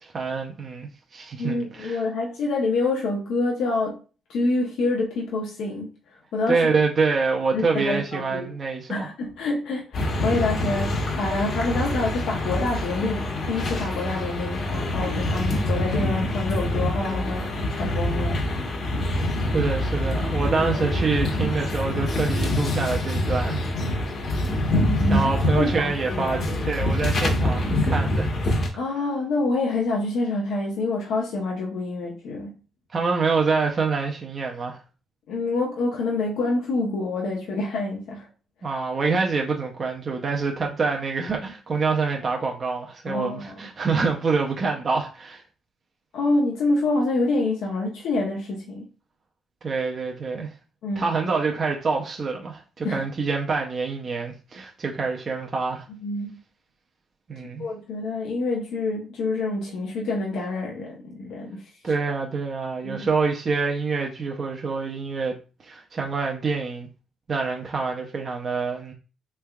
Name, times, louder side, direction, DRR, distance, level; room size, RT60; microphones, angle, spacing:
voice 1, 0.0-2.0 6.5-9.1 19.5-23.6 23.9-24.0 25.1-28.3 32.9-34.8 38.6-45.4 49.6-50.5 51.0-55.9 57.3-57.6 61.8-65.4 65.6-66.9 67.3-68.9, right 4 dB, 45° right, 0.6 m, -26 dB
voice 2, 1.4-4.0 4.3-5.9 6.3-6.6 7.5-8.5 8.9-18.4 24.6-25.3 25.6-26.4 28.7-32.5 35.3-38.3 43.1-43.6 46.1-48.9 50.8-51.1 52.8-53.0 56.0-56.4 57.6-61.9 62.8-63.1, left 2 dB, 80° left, 0.7 m, -27 dB
sound 1, 9.9-28.7, left 1 dB, 55° left, 1.0 m, -25 dB
3.3 x 3.3 x 2.3 m
cardioid pair, 90°, 0 cm